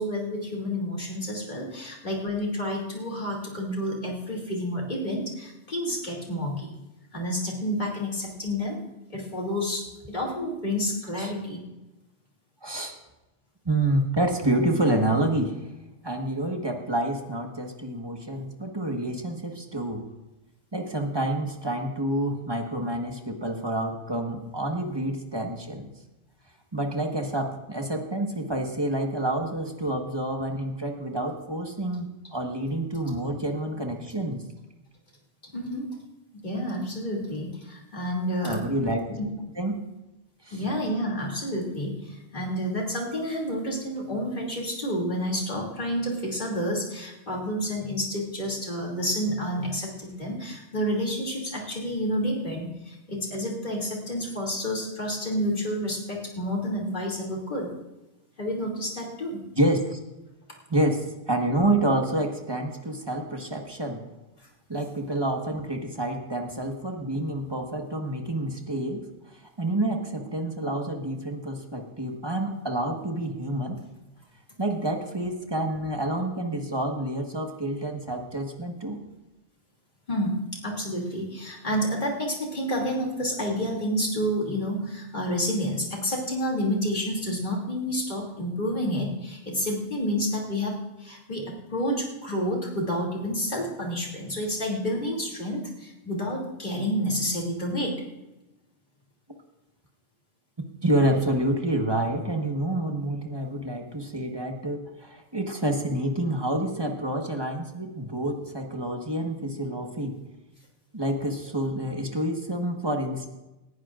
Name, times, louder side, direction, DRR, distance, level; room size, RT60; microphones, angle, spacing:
voice 1, 0.0-6.7 7.1-8.8 9.1-11.6 35.4-35.9 36.4-38.6 39.2-39.3 40.5-57.7 58.4-59.4 80.1-98.0, equal, 40° left, -2 dB, 2.9 m, -29 dB
voice 2, 12.6-12.9 13.6-15.6 16.0-20.0 20.7-25.9 26.7-34.4 38.4-39.2 39.6-39.8 40.4-40.6 59.6-60.0 60.7-64.0 64.7-73.8 74.6-79.0 100.8-110.2 110.9-113.3, right 1 dB, 20° right, 2 dB, 1.4 m, -28 dB
19.0 x 14.5 x 2.5 m, 1.0 s
omnidirectional pair, 1.2 m